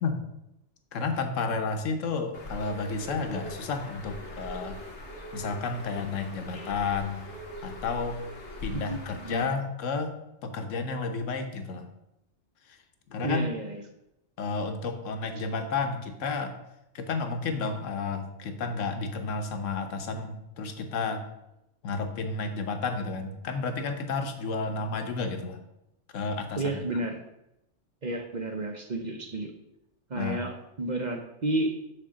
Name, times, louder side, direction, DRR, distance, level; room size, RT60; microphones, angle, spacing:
voice 1, 0.9-4.8 5.3-7.2 7.6-8.2 8.6-10.2 10.4-11.9 13.1-13.5 14.4-16.5 16.9-21.3 21.8-25.6 26.1-26.8 30.1-30.4, left 4 dB, 85° left, 6 dB, 1.2 m, -31 dB
Bird, 2.3-9.4, equal, 65° left, 1.6 m, -42 dB
voice 2, 8.9-9.4 13.2-13.8 26.6-27.2 28.0-29.5 30.1-31.8, right 2 dB, 45° right, 4 dB, 0.7 m, -31 dB
6.6 x 3.6 x 6.1 m, 0.86 s
omnidirectional pair, 1.3 m